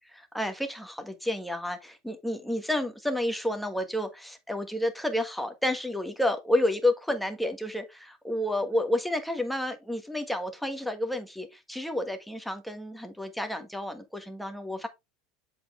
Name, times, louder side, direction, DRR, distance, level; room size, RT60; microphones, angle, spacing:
voice 1, 0.1-14.9, left 1 dB, ahead, 1.4 m, -30 dB
7.9 x 4.3 x 3.5 m
supercardioid pair, 115°, 3 cm